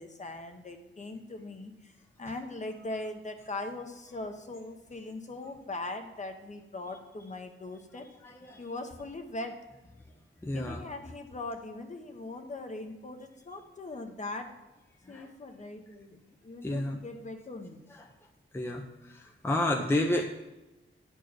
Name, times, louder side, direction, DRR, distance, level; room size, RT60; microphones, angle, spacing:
voice 1, 0.0-1.9 2.2-8.1 8.6-9.6 10.5-14.5 15.1-17.8, left 2 dB, 35° left, 5 dB, 1.0 m, -40 dB
voice 2, 8.2-8.6 10.4-10.8 15.1-15.3 16.6-17.0 18.5-18.8 19.4-20.2, left 1 dB, 10° left, 2 dB, 0.6 m, -29 dB
9.8 x 4.6 x 6.2 m, 1.1 s
wide cardioid pair, 140°, 21 cm